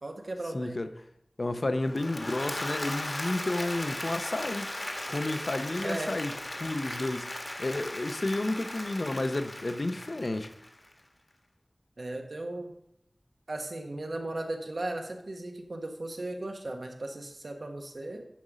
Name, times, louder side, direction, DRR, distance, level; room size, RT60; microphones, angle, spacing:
voice 1, 0.0-0.8 5.8-6.1 12.0-12.7 13.5-18.2, right 2 dB, 75° right, 1.4 m, -36 dB
voice 2, 0.5-0.9 1.4-4.7 5.1-6.3 6.6-7.3 7.6-10.5, left 2 dB, 60° left, 0.7 m, -31 dB
Applause / Crowd, 1.8-10.9, left 1 dB, 45° left, 1.4 m, -37 dB
10.5 x 5.5 x 5.0 m
wide cardioid pair, 50°, 0 cm